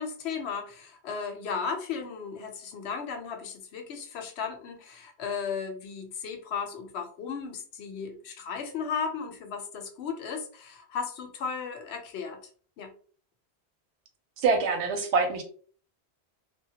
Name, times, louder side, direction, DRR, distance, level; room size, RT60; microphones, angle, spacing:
voice 1, 0.0-12.4 12.8-12.9, left 6 dB, 80° left, 4 dB, 0.8 m, -35 dB
voice 2, 14.4-15.4, right 4 dB, 90° right, 5 dB, 0.9 m, -25 dB
2.2 x 2.1 x 2.7 m, 0.43 s
omnidirectional pair, 1.1 m